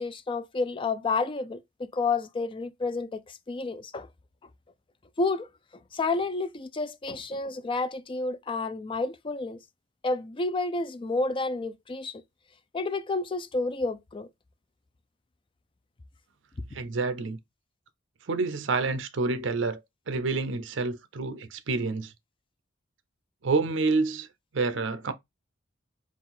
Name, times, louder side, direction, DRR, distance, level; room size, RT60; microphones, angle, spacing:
voice 1, 0.0-4.1 5.2-5.5 5.9-9.6 10.0-12.2 12.7-14.3, left 3 dB, 25° left, 0.4 m, -30 dB
voice 2, 16.7-17.4 18.3-19.8 20.1-22.1 23.4-24.3 24.5-25.1, right 3 dB, 70° right, 0.5 m, -28 dB
3.8 x 2.4 x 4.1 m
head